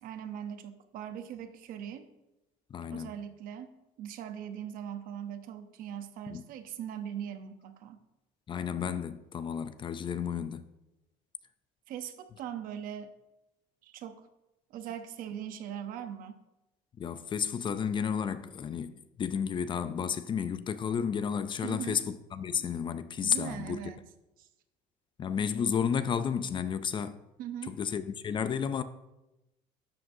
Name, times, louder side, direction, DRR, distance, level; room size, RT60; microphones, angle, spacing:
voice 1, 0.0-2.1 2.8-8.0 11.9-13.1 13.8-14.2 14.7-16.4 21.6-22.0 23.2-24.0 24.4-24.5 27.4-27.8, right 9 dB, 60° right, 0.8 m, -40 dB
voice 2, 2.7-3.1 6.3-6.4 8.5-10.7 17.0-23.8 25.2-27.2 27.7-28.8, left 7 dB, 30° left, 0.4 m, -32 dB
12.0 x 7.4 x 2.7 m
cardioid pair, 130°, 16 cm